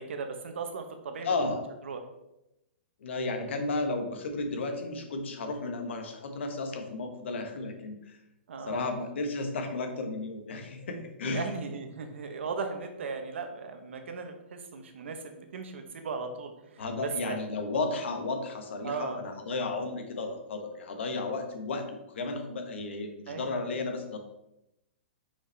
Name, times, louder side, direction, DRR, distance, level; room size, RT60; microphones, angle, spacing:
voice 1, 0.0-1.3 1.8-2.0 8.5-8.9 11.2-17.4 18.8-19.2 23.3-23.6, right 5 dB, 80° right, 6 dB, 1.1 m, -37 dB
voice 2, 1.2-1.6 3.0-8.2 8.5-11.5 16.8-24.2, left 3 dB, 75° left, 5 dB, 1.3 m, -33 dB
5.7 x 5.3 x 3.4 m, 0.88 s
hypercardioid pair, 155°, 6 cm